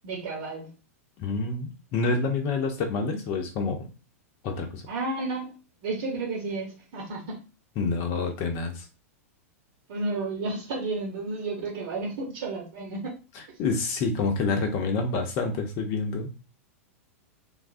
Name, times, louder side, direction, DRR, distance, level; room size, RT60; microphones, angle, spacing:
voice 1, 0.0-0.7 4.9-5.5 5.8-7.4 9.9-13.1, right 3 dB, 50° right, -1 dB, 1.0 m, -32 dB
voice 2, 1.2-3.9 4.4-4.8 7.8-8.9 13.3-16.3, left 4 dB, 40° left, 4 dB, 0.8 m, -28 dB
3.2 x 2.3 x 2.5 m, 0.31 s
figure-of-eight pair, 95°, 8 cm